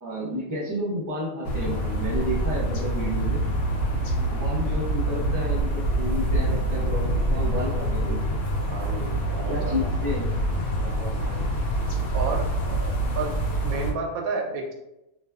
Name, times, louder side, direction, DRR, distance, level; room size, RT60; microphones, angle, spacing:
voice 1, 0.0-3.4 4.3-8.2 9.5-10.3 12.7-12.9, equal, 15° right, -7 dB, 0.7 m, -31 dB
sound 1, 1.4-13.9, right 1 dB, 70° left, 0.9 m, -26 dB
voice 2, 8.7-9.9 10.8-11.4 12.1-12.5 13.1-14.7, right 4 dB, 90° right, 1 dB, 1.0 m, -32 dB
2.5 x 2.3 x 2.3 m, 0.90 s
omnidirectional pair, 1.5 m